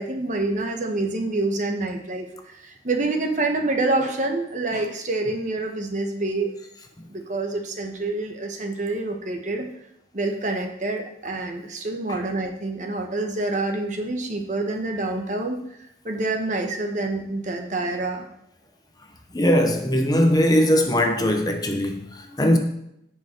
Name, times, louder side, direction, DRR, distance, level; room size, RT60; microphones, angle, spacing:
voice 1, 0.0-6.5 7.1-9.7 10.1-15.6 16.0-18.3, right 2 dB, 45° right, 1.3 m, -27 dB
voice 2, 19.3-22.6, equal, 20° left, 1.0 m, -20 dB
16.0 x 5.4 x 4.5 m
head